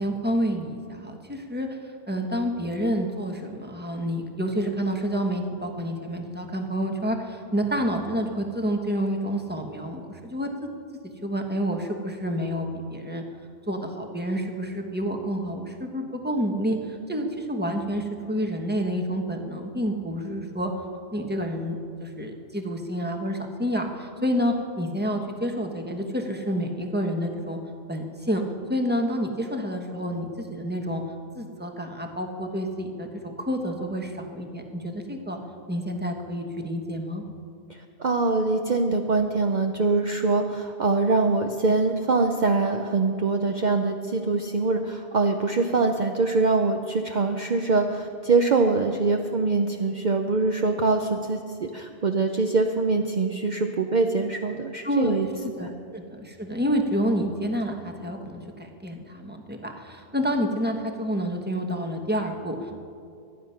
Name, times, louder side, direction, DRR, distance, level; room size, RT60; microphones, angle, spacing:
voice 1, 0.0-1.7 2.1-10.7 11.2-13.2 13.7-16.8 17.1-20.7 21.1-27.6 27.9-28.4 28.7-31.0 31.3-35.4 35.7-37.2 54.8-62.7, equal, 10° right, 3 dB, 1.3 m, -29 dB
voice 2, 38.0-55.3 55.6-55.7, right 3 dB, 45° right, 4 dB, 0.8 m, -23 dB
24.0 x 9.8 x 5.8 m, 2.4 s
omnidirectional pair, 1.1 m